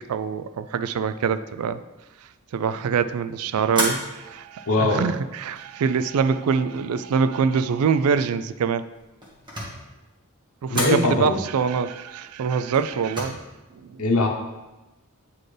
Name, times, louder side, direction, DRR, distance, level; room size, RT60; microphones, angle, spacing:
voice 1, 0.0-1.8 2.5-8.8 10.6-13.4 13.9-14.0, right 6 dB, 75° right, 12 dB, 0.3 m, -24 dB
sound 1, 3.7-4.4 5.1-5.7 8.9-9.9 10.7-11.1 12.7-13.2, equal, 20° right, 1.6 m, -29 dB
voice 2, 4.7-5.0 10.7-11.4 14.0-14.3, left 2 dB, 85° left, 2 dB, 0.9 m, -21 dB
8.9 x 4.3 x 3.3 m, 1.1 s
head